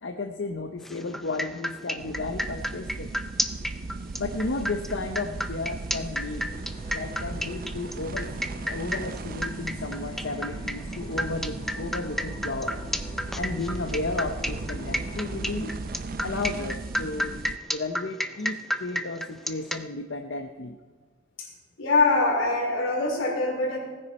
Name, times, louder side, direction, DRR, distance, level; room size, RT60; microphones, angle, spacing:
voice 1, 0.0-3.1 4.2-6.5 6.9-8.4 8.7-12.8 13.4-15.8 16.2-17.4 17.7-20.8, left 3 dB, 65° left, 5 dB, 0.7 m, -33 dB
sound 1, 0.8-19.8, equal, ahead, 0.5 m, -32 dB
sound 2, 2.0-17.6, right 3 dB, 50° right, 0.5 m, -37 dB
voice 2, 4.3-4.6 21.4-21.5 21.8-23.8, left 3 dB, 85° left, 0 dB, 3.4 m, -24 dB
sound 3, 6.3-16.8, left 1 dB, 25° left, 1.5 m, -45 dB
17.5 x 9.9 x 4.2 m, 1.4 s
head